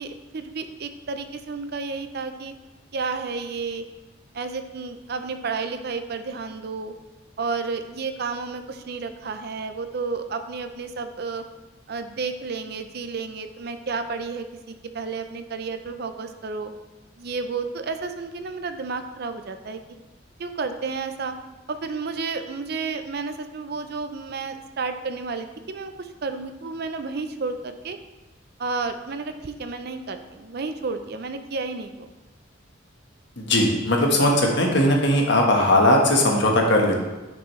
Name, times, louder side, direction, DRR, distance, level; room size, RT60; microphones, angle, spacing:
voice 1, 0.0-2.5 2.9-3.8 4.3-6.9 7.4-11.4 11.9-16.7 17.2-19.8 20.4-21.3 21.7-28.0 28.6-32.1, right 4 dB, 55° right, 8 dB, 0.5 m, -31 dB
voice 2, 33.4-37.0, left 1 dB, 60° left, 0 dB, 1.3 m, -19 dB
9.0 x 6.1 x 3.2 m, 1.1 s
head